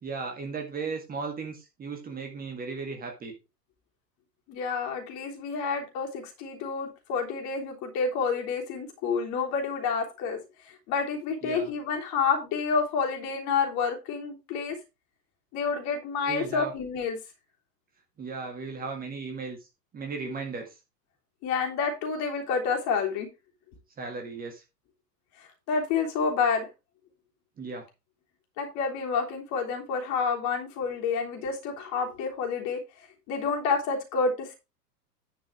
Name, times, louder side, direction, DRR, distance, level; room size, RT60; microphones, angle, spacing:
voice 1, 0.0-3.3 11.4-11.7 16.2-16.7 18.2-19.6 19.9-20.8 24.0-24.6 27.6-27.8, right 4 dB, 20° right, 4 dB, 1.8 m, -36 dB
voice 2, 4.5-10.4 10.9-14.7 15.5-17.2 21.4-23.3 25.7-26.6 28.6-32.8 33.3-34.5, left 5 dB, 35° left, 1 dB, 3.3 m, -29 dB
10.5 x 5.4 x 4.7 m, 0.26 s
figure-of-eight pair, 95°, 49 cm